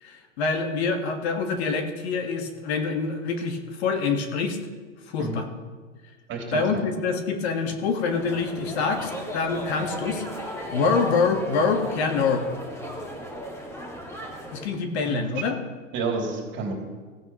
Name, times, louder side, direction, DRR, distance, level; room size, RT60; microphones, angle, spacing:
voice 1, 0.0-4.6 5.1-5.4 6.5-12.4 14.5-15.6, left 4 dB, 55° left, 5 dB, 1.6 m, -26 dB
voice 2, 6.3-6.8 15.0-15.3 15.9-16.7, right 4 dB, 30° right, 0 dB, 2.8 m, -30 dB
sound 1, 8.0-14.7, equal, 5° left, 2.0 m, -36 dB
16.5 x 9.8 x 3.0 m, 1.4 s
hypercardioid pair, 120°, 38 cm